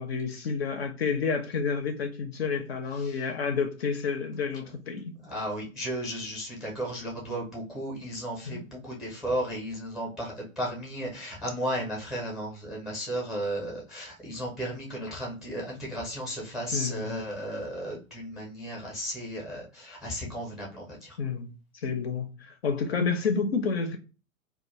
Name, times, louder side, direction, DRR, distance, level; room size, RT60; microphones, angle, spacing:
voice 1, 0.0-5.1 8.5-8.6 16.7-17.2 21.2-21.5 21.8-24.0, left 5 dB, 50° left, 0.5 m, -29 dB
voice 2, 5.2-21.2, right 1 dB, ahead, 0.5 m, -34 dB
2.2 x 2.1 x 2.9 m
figure-of-eight pair, 110°, 42 cm